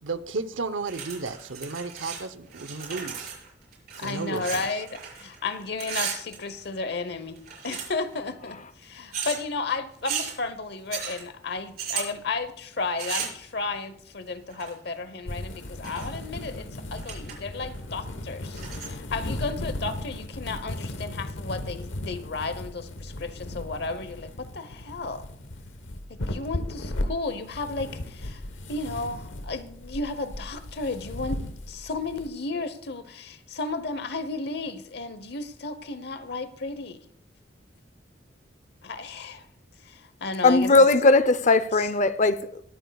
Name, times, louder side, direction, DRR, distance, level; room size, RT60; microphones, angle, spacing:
voice 1, 0.0-3.3 3.9-4.8, right 3 dB, 90° right, 0.9 m, -33 dB
sound 1, 0.9-2.2 2.5-5.4 5.7-6.9 7.4-8.1 9.1-9.4 10.0-10.3 10.9-11.2 11.8-12.1 13.0-13.4 14.5-14.9 15.6-16.2 16.6-16.7 17.0-17.3 17.7-17.8 18.5-18.9, right 7 dB, 55° right, 5.9 m, -35 dB
voice 2, 4.0-25.3 26.1-28.4 28.7-37.0 38.8-39.5 39.8-40.7 41.8-41.9, left 3 dB, 60° left, 1.0 m, -33 dB
sound 2, 15.2-32.3, left 1 dB, 90° left, 1.2 m, -36 dB
voice 3, 40.4-42.6, left 3 dB, 40° left, 0.6 m, -19 dB
22.5 x 9.3 x 2.3 m
head